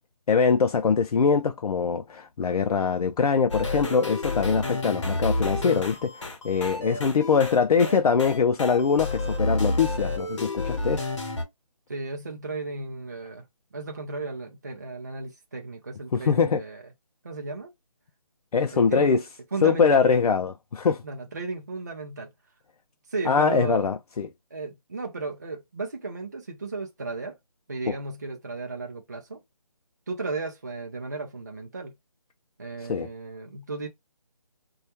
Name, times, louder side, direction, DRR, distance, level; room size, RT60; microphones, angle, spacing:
voice 1, 0.3-11.1 16.1-16.6 18.5-19.2 19.6-21.0 23.3-24.3 32.9-33.1, left 5 dB, 85° left, 0.4 m, -23 dB
sound 1, 3.5-11.4, left 2 dB, 55° left, 0.9 m, -30 dB
voice 2, 11.9-13.4 13.7-16.8 17.2-17.7 18.7-19.2 19.5-20.0 21.0-22.3 23.1-23.9 24.5-27.4 27.7-29.4 30.1-31.9 32.6-33.9, right 3 dB, 30° right, 0.4 m, -34 dB
2.2 x 2.1 x 2.8 m
figure-of-eight pair, 170°, 19 cm